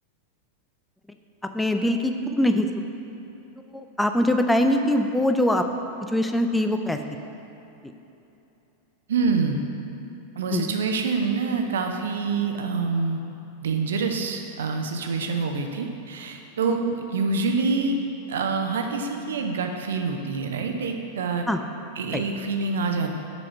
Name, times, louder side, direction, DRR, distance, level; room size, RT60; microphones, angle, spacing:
voice 1, 1.5-2.7 3.7-5.7 6.0-7.0 10.5-10.7 16.7-16.8 21.5-21.6 22.1-22.2, left 1 dB, 5° left, 6 dB, 0.4 m, -22 dB
voice 2, 9.1-9.6 10.4-13.2 13.6-18.0 18.3-21.4 22.0-23.1, right 4 dB, 60° right, 4 dB, 0.6 m, -26 dB
7.2 x 4.3 x 5.5 m, 3.0 s
figure-of-eight pair, 90°, 0 cm